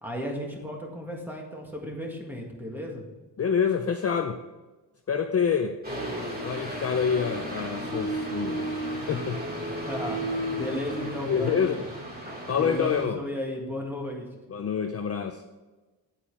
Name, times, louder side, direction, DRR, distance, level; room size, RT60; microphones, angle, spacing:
voice 1, 0.0-3.1 9.9-11.9 12.6-14.3, left 1 dB, 5° right, 0 dB, 1.9 m, -34 dB
voice 2, 3.4-4.4 5.1-5.8 6.4-9.4 11.3-11.8 12.5-13.2 14.5-15.4, left 7 dB, 35° left, 5 dB, 0.5 m, -27 dB
sound 1, 5.8-13.0, right 1 dB, 25° right, 2.4 m, -33 dB
9.2 x 8.7 x 4.8 m, 1.2 s
wide cardioid pair, 175°, 40 cm